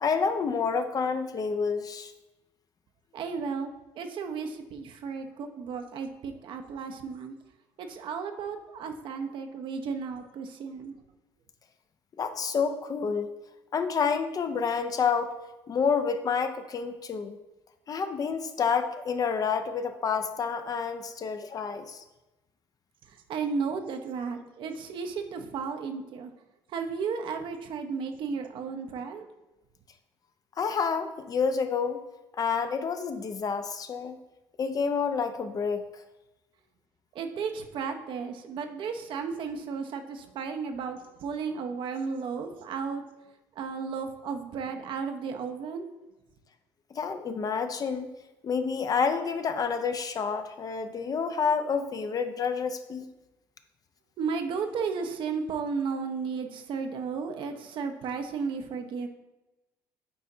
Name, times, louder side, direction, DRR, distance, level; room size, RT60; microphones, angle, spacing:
voice 1, 0.0-2.1 12.2-13.3 13.7-15.3 15.7-17.4 17.9-22.0 30.6-32.0 32.4-34.2 34.6-35.8 46.9-48.1 48.4-53.1, left 6 dB, 40° left, 8 dB, 0.6 m, -29 dB
voice 2, 3.1-7.3 7.8-10.9 23.3-26.3 26.7-29.2 37.1-43.0 43.6-45.9 54.2-59.1, right 5 dB, 55° right, 6 dB, 0.7 m, -34 dB
8.6 x 4.2 x 2.7 m, 1.0 s
hypercardioid pair, 60°, 10 cm